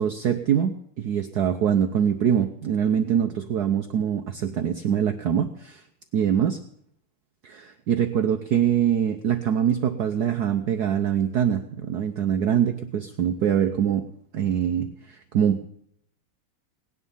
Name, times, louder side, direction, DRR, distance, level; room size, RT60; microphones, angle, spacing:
voice 1, 0.0-5.8 6.1-6.6 7.4-14.1 14.3-15.7, right 9 dB, 65° right, 7 dB, 1.1 m, -24 dB
18.0 x 10.5 x 5.6 m, 0.72 s
omnidirectional pair, 2.4 m